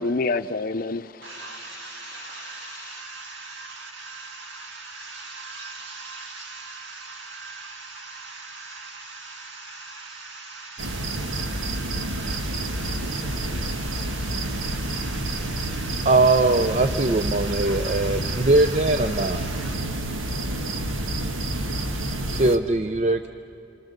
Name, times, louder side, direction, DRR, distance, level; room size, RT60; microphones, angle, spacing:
voice 1, 0.0-3.0, left 3 dB, 45° left, 10 dB, 0.6 m, -30 dB
voice 2, 1.2-19.8, right 3 dB, 70° right, 3 dB, 2.0 m, -40 dB
sound 1, 10.8-22.6, right 1 dB, 85° right, 1.5 m, -29 dB
voice 3, 16.0-19.4 22.3-23.3, right 2 dB, 35° right, 9 dB, 0.5 m, -21 dB
27.5 x 27.0 x 6.7 m, 2.8 s
head